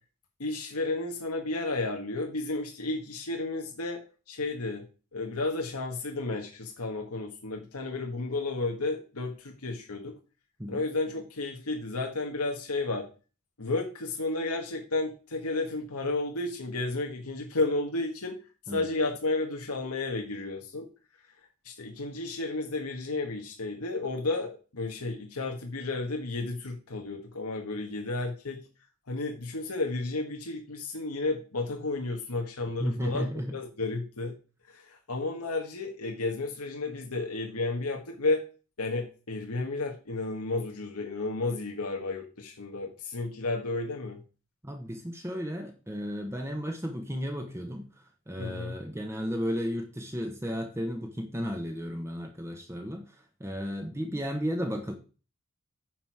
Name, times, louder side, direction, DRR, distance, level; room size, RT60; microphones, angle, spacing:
voice 1, 0.4-4.0 4.3-4.8 5.1-10.1 10.7-13.1 13.6-18.4 18.7-20.9 21.6-28.6 29.1-34.3 34.7-38.4 38.8-44.2 48.4-48.7, left 2 dB, 90° left, 2 dB, 1.5 m, -32 dB
voice 2, 32.8-33.6 44.6-54.9, equal, 10° right, 4 dB, 1.0 m, -34 dB
9.3 x 6.1 x 4.7 m, 0.35 s
head